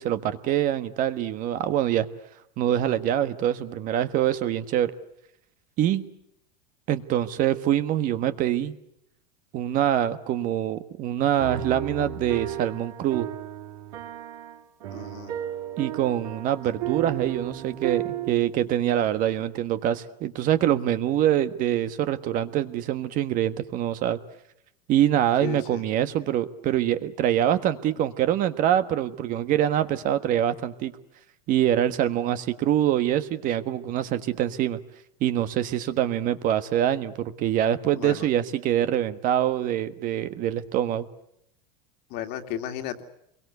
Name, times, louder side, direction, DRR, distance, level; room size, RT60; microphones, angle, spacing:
voice 1, 0.0-2.1 2.6-4.9 5.8-6.0 6.9-8.7 9.5-13.3 15.8-24.2 24.9-30.9 31.5-34.8 35.2-41.0, right 11 dB, 40° right, 11 dB, 1.4 m, -24 dB
sound 1, 11.4-18.7, right 11 dB, 80° right, 5.3 m, -34 dB
voice 2, 14.9-15.3 25.4-25.8 37.9-38.3 42.1-43.0, left 10 dB, 55° left, 6 dB, 2.5 m, -34 dB
27.5 x 23.0 x 8.1 m, 0.77 s
supercardioid pair, 140°, 21 cm